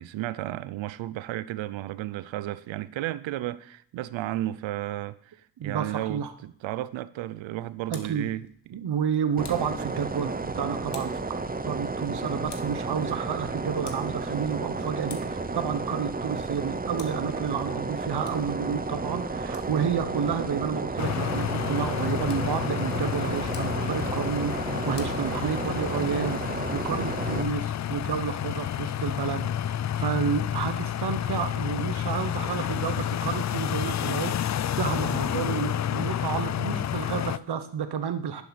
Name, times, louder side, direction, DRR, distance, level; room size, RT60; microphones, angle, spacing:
voice 1, 0.0-8.9, right 14 dB, 80° right, 0.6 m, -33 dB
voice 2, 5.6-6.3 7.9-8.3 8.7-11.2 11.6-29.5 30.0-38.4, right 7 dB, 60° right, 1.1 m, -30 dB
Tick, 7.6-26.0, left 6 dB, 65° left, 1.5 m, -53 dB
sound 1, 9.4-27.4, right 3 dB, 20° right, 0.8 m, -32 dB
sound 2, 21.0-37.4, left 10 dB, 40° left, 0.4 m, -30 dB
11.0 x 7.2 x 4.1 m
cardioid pair, 60°, 45 cm